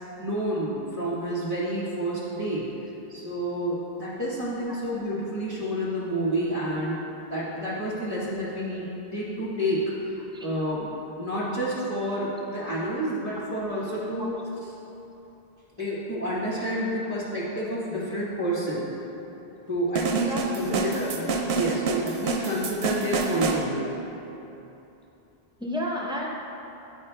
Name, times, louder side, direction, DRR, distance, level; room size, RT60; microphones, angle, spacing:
voice 1, 0.2-2.7 3.1-10.9 11.2-14.3 14.6-14.7 15.8-18.9 19.7-21.2 21.5-23.9, right 1 dB, 15° left, -9 dB, 1.0 m, -29 dB
sound 1, 20.0-23.6, right 4 dB, 90° right, 0.8 m, -28 dB
voice 2, 20.1-20.9 23.3-23.4 25.6-26.3, equal, 5° right, -3 dB, 0.5 m, -32 dB
10.5 x 4.8 x 2.2 m, 3.0 s
omnidirectional pair, 1.1 m